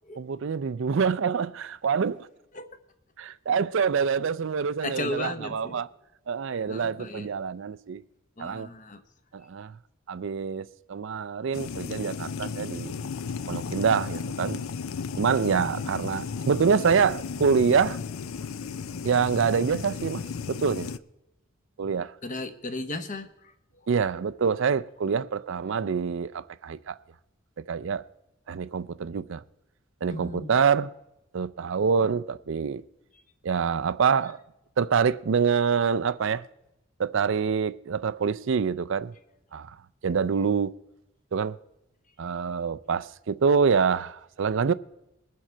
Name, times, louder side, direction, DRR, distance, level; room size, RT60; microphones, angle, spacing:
voice 1, 0.2-2.3 3.2-5.9 6.3-8.0 8.4-8.7 9.3-9.8 10.1-12.9 13.5-14.6 15.2-18.0 19.0-20.9 21.8-22.1 23.9-27.0 27.7-28.0 28.5-29.4 30.0-30.9 31.3-32.8 33.4-34.4 34.8-36.4 37.0-39.1 39.5-39.8 40.0-40.8 41.3-41.6 42.2-44.7, right 6 dB, 55° right, 0.4 m, -26 dB
voice 2, 4.8-5.8 6.6-7.3 8.4-9.0 22.2-23.3 30.1-30.5, left 2 dB, 35° left, 0.9 m, -35 dB
sound 1, 11.5-21.0, left 5 dB, 70° left, 0.5 m, -34 dB
21.5 x 7.4 x 4.5 m
head